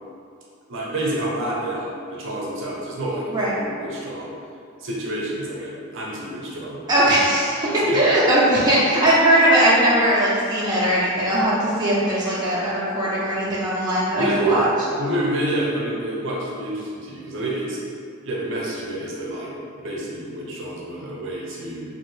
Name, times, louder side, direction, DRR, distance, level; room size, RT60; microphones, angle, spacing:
voice 1, 0.7-4.3 4.8-6.8 7.6-8.0 14.2-14.7 15.0-17.8 18.2-19.5 19.8-21.8, right 1 dB, 60° right, -4 dB, 0.6 m, -28 dB
voice 2, 6.9-7.7 7.9-14.7, right 1 dB, 20° right, -9 dB, 0.5 m, -19 dB
2.9 x 2.6 x 3.1 m, 2.4 s
head